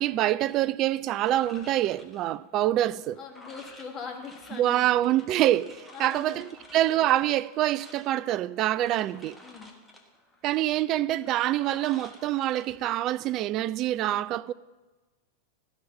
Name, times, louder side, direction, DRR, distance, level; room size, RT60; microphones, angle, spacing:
voice 1, 0.0-3.2 4.6-9.4 10.4-14.5, right 13 dB, 35° right, 0.3 m, -26 dB
Ice Dispenser, 1.1-13.4, left 1 dB, 5° left, 1.4 m, -53 dB
voice 2, 3.2-4.9 5.9-6.4 9.4-9.7, left 6 dB, 30° left, 1.7 m, -41 dB
14.0 x 6.1 x 5.3 m
figure-of-eight pair, 90°, 0 cm